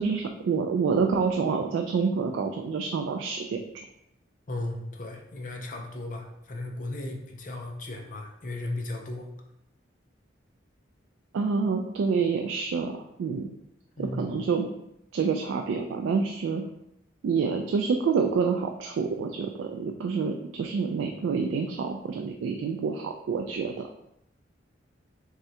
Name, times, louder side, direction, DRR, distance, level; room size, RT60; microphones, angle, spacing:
voice 1, 0.0-3.8 11.3-13.5 14.0-14.7 15.1-16.6 17.2-23.9, right 5 dB, 85° right, 4 dB, 0.3 m, -27 dB
voice 2, 4.5-9.3 14.0-14.3, left 2 dB, 45° left, 2 dB, 0.5 m, -36 dB
3.6 x 3.2 x 2.8 m, 0.80 s
head